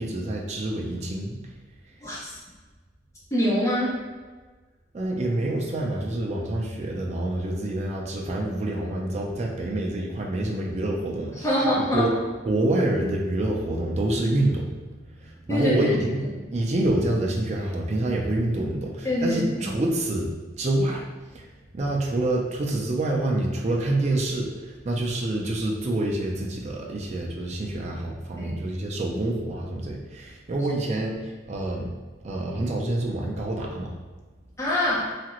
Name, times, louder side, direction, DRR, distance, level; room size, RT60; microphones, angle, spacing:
voice 1, 0.0-1.4 4.9-11.7 11.9-12.1 12.4-16.2 16.5-20.3 20.6-21.1 21.3-21.5 21.7-31.9 32.2-33.9, right 1 dB, 35° right, -1 dB, 0.4 m, -27 dB
voice 2, 2.0-2.3 3.3-3.9 11.4-12.1 15.5-15.8 19.0-19.4 28.4-28.5 34.6-35.1, left 1 dB, 15° left, -6 dB, 0.6 m, -24 dB
2.9 x 2.4 x 2.9 m, 1.3 s
head